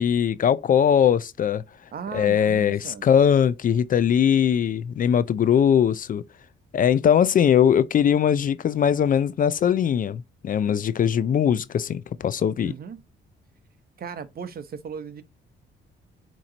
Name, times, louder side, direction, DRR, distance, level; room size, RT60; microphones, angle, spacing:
voice 1, 0.0-1.6 2.1-6.2 6.7-12.7, left 8 dB, 45° left, 0.4 m, -20 dB
voice 2, 1.9-3.0 12.6-13.0 14.0-15.2, right 6 dB, 50° right, 0.9 m, -36 dB
8.4 x 3.1 x 3.9 m
cardioid pair, 90°, 20 cm